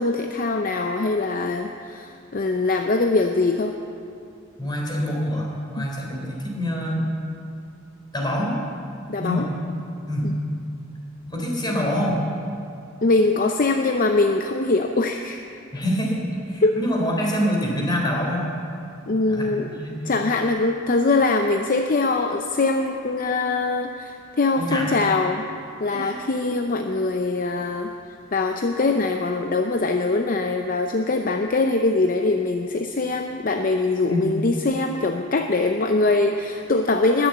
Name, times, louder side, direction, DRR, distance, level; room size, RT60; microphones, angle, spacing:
voice 1, 0.0-3.8 5.8-5.9 9.1-9.5 10.2-10.4 13.0-15.4 16.6-16.8 19.1-19.8 20.0-25.5 25.8-27.9 28.3-37.3, left 3 dB, 45° left, 5 dB, 0.6 m, -22 dB
voice 2, 4.6-7.0 8.1-8.6 9.2-9.5 10.1-10.3 11.3-12.2 15.7-16.2 16.5-18.5 19.3-20.0 24.6-24.9 25.8-26.2 34.1-34.4, equal, 20° left, -2 dB, 3.4 m, -25 dB
20.0 x 7.0 x 8.1 m, 2.6 s
head